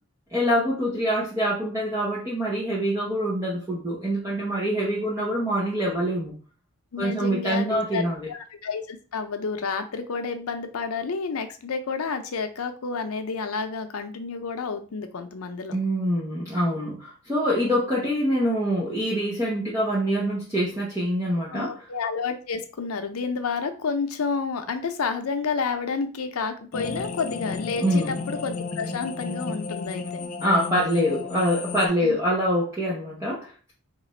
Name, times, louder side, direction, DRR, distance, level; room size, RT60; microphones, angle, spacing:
voice 1, 0.3-6.3 7.0-8.3 15.7-21.7 27.8-28.1 30.4-33.7, equal, 15° right, -6 dB, 0.6 m, -25 dB
voice 2, 6.9-15.8 21.5-30.3 32.0-32.2, left 5 dB, 85° left, 8 dB, 0.6 m, -30 dB
sound 1, 26.7-31.9, left 4 dB, 35° left, 0.3 m, -33 dB
3.0 x 2.5 x 4.1 m, 0.38 s
head